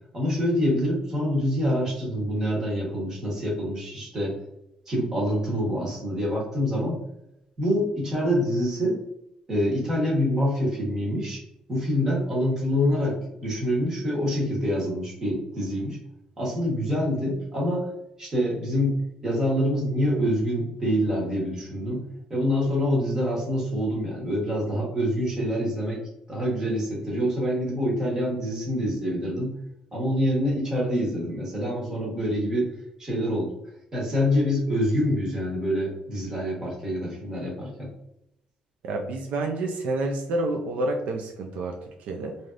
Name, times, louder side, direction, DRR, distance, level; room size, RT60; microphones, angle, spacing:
voice 1, 0.1-4.4 4.9-7.0 7.6-9.0 9.5-11.4 11.7-16.0 16.4-17.9 18.2-22.0 22.3-26.0 26.3-29.5 29.9-32.7 33.0-33.5 33.9-37.9, equal, 25° right, -4 dB, 1.2 m, -26 dB
voice 2, 38.8-42.4, right 2 dB, 80° right, 2 dB, 0.4 m, -29 dB
3.3 x 2.7 x 2.4 m, 0.81 s
cardioid pair, 160°, 2 cm